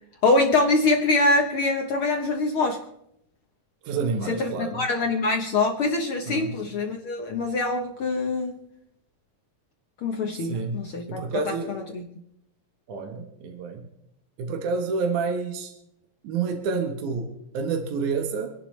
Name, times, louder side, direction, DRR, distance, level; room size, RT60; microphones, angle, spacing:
voice 1, 0.2-2.8 4.2-8.5 10.0-12.0, left 3 dB, 70° left, 3 dB, 1.3 m, -24 dB
voice 2, 3.8-4.8 6.3-6.5 10.3-10.8 11.1-11.8 12.9-13.9 14.4-15.7 16.2-17.3 17.5-18.5, right 5 dB, 70° right, 3 dB, 2.6 m, -29 dB
28.0 x 11.0 x 3.2 m, 0.80 s
omnidirectional pair, 3.8 m